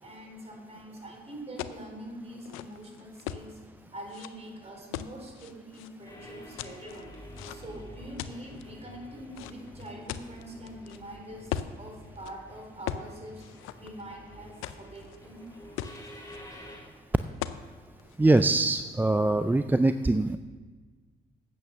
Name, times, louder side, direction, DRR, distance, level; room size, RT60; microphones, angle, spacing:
voice 1, 0.0-3.6 3.9-7.1 7.4-13.4 13.8-15.5, right 1 dB, 30° right, 1 dB, 3.6 m, -44 dB
sound 1, 1.6-1.8 2.3-3.5 4.1-4.3 4.9-5.9 6.6-7.8 8.2-8.6 9.3-11.0 11.5-11.8 12.1-12.3 12.9-13.1 13.4-14.2 14.6-15.2 15.5-15.6 15.8-16.4 17.4-17.6 18.0-18.4, left 11 dB, 90° left, 0.5 m, -38 dB
sound 2, 6.0-16.8, left 1 dB, 15° left, 3.3 m, -48 dB
voice 2, 18.2-20.4, right 2 dB, 10° right, 10 dB, 0.3 m, -23 dB
8.7 x 8.6 x 6.7 m, 1.4 s
supercardioid pair, 65°, 21 cm